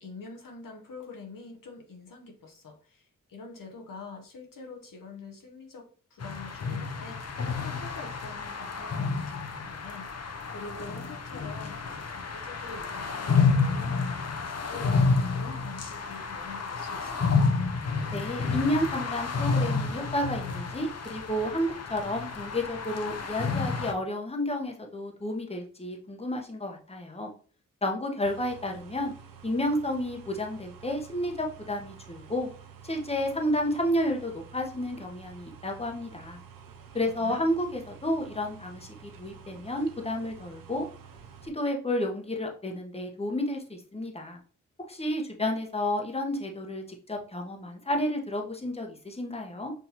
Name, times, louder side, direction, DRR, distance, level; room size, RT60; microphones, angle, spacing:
voice 1, 0.0-17.5 37.1-37.4, left 4 dB, 80° left, 0.9 m, -46 dB
sound 1, 6.2-23.9, left 4 dB, 50° left, 0.6 m, -30 dB
voice 2, 18.1-27.3 27.8-29.1 29.4-32.5 32.8-36.4 36.9-40.9 41.4-44.4 44.9-49.7, left 1 dB, 20° left, 1.0 m, -31 dB
sound 2, 28.2-41.5, right 7 dB, 85° right, 0.5 m, -50 dB
6.0 x 2.6 x 2.8 m
cardioid pair, 40°, 33 cm